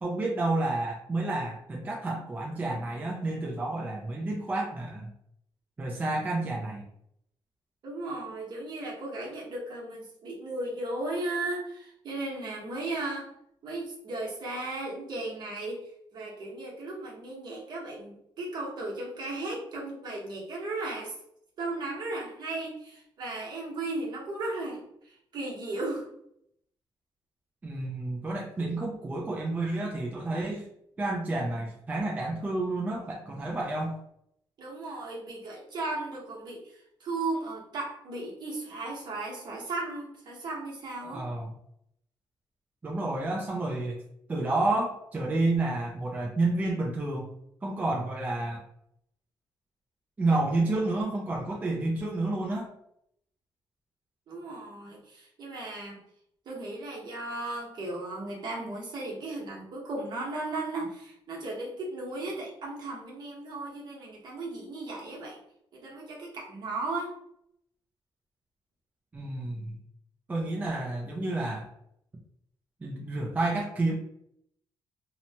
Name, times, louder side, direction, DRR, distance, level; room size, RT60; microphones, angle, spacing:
voice 1, 0.0-5.1 5.8-6.9 27.6-30.7 31.0-34.0 41.0-41.5 42.8-44.0 44.3-47.3 47.6-48.6 50.2-52.7 69.1-69.8 70.3-71.7 72.8-73.9, right 2 dB, 15° right, -2 dB, 0.4 m, -30 dB
voice 2, 7.8-13.3 13.6-21.1 21.6-26.1 34.6-41.3 54.3-56.0 56.5-65.4 65.7-67.1, right 2 dB, 50° right, -3 dB, 1.0 m, -36 dB
2.8 x 2.1 x 2.8 m, 0.74 s
cardioid pair, 150°, 9 cm